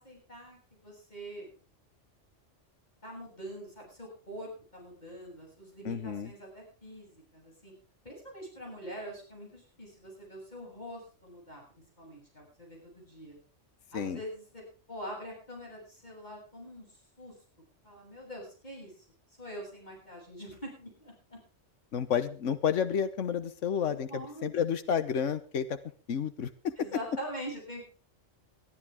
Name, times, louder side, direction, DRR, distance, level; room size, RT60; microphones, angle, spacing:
voice 1, 0.0-1.5 3.0-7.7 8.0-11.6 12.0-13.4 13.9-16.9 17.2-17.3 17.8-19.0 19.4-21.4 23.8-24.6 26.8-27.9, equal, 35° left, -1 dB, 8.1 m, -44 dB
voice 2, 5.8-6.3 13.9-14.2 21.9-25.8 26.1-26.7, left 7 dB, 80° left, 12 dB, 1.4 m, -30 dB
22.0 x 12.5 x 3.7 m, 0.36 s
omnidirectional pair, 1.3 m